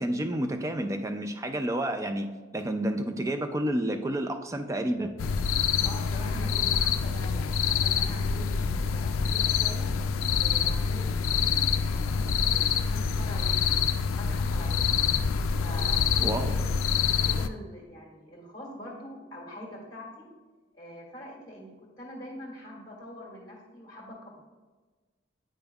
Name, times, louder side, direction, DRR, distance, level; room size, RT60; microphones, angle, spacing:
voice 1, 0.0-2.3 2.5-5.1 16.2-16.6, right 1 dB, 15° right, 6 dB, 0.3 m, -30 dB
sound 1, 5.2-17.5, left 6 dB, 90° left, 0.3 m, -26 dB
voice 2, 5.8-9.9 10.3-13.8 14.2-14.9 15.5-16.7 17.1-20.3 20.7-24.4, left 1 dB, 20° left, -3 dB, 1.5 m, -44 dB
8.7 x 5.2 x 2.3 m, 1.3 s
head